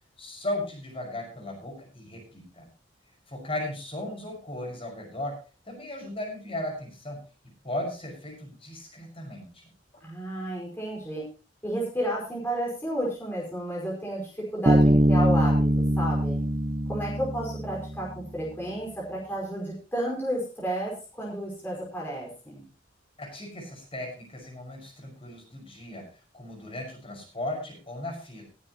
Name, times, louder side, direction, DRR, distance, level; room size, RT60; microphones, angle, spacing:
voice 1, 0.2-2.7 3.3-5.3 5.7-7.2 7.6-9.7 23.2-26.0 26.3-28.4, left 1 dB, 30° left, 1 dB, 6.1 m, -36 dB
voice 2, 10.0-11.2 11.6-16.4 16.9-22.6, right 1 dB, 10° left, -5 dB, 5.2 m, -32 dB
Bass guitar, 14.7-18.1, right 1 dB, 25° right, 0.7 m, -23 dB
20.5 x 9.6 x 3.1 m, 0.33 s
head